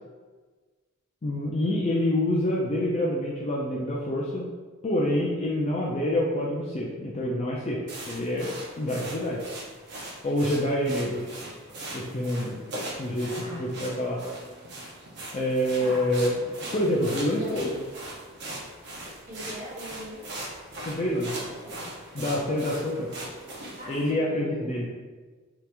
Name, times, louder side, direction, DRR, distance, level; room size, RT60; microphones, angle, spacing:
voice 1, 1.2-4.4 4.8-7.8 8.1-8.5 8.8-9.4 10.2-11.2 11.9-12.6 13.0-13.3 13.6-14.2 15.3-17.7 20.9-21.4 22.1-23.1 23.9-24.9, left 1 dB, 30° left, -4 dB, 0.3 m, -27 dB
sound 1, 7.9-24.1, right 1 dB, 50° right, 0.7 m, -40 dB
voice 2, 17.2-17.8 19.2-20.2 21.4-21.8 23.8-24.8, equal, 25° right, -11 dB, 1.4 m, -40 dB
2.9 x 2.4 x 3.3 m, 1.4 s
head